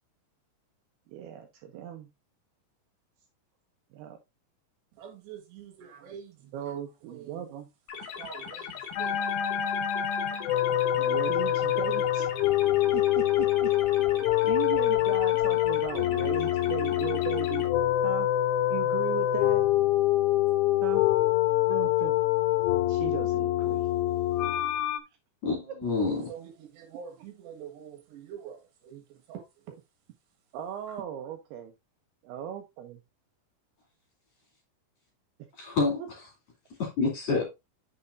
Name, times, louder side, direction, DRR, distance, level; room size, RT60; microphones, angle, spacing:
voice 1, 1.1-2.1 3.9-4.2 6.5-7.7 11.0-12.3 12.9-13.7 14.5-17.7 18.0-18.3 18.7-19.7 20.8-21.1 21.7-22.1 22.4-22.6 22.9-23.9 30.5-31.7 32.2-33.0 36.0-36.1, right 10 dB, 90° right, 2.3 m, -37 dB
voice 2, 4.9-6.7 7.0-7.5 7.9-9.2 26.3-29.8 30.9-31.0, right 8 dB, 70° right, 3.5 m, -46 dB
sound 1, 7.9-17.7, left 6 dB, 60° left, 2.2 m, -40 dB
sound 2, 9.0-25.0, left 13 dB, 90° left, 3.0 m, -25 dB
voice 3, 25.4-26.3 35.6-36.2 36.8-37.4, left 3 dB, 40° left, 3.4 m, -28 dB
8.6 x 6.8 x 2.5 m
omnidirectional pair, 5.4 m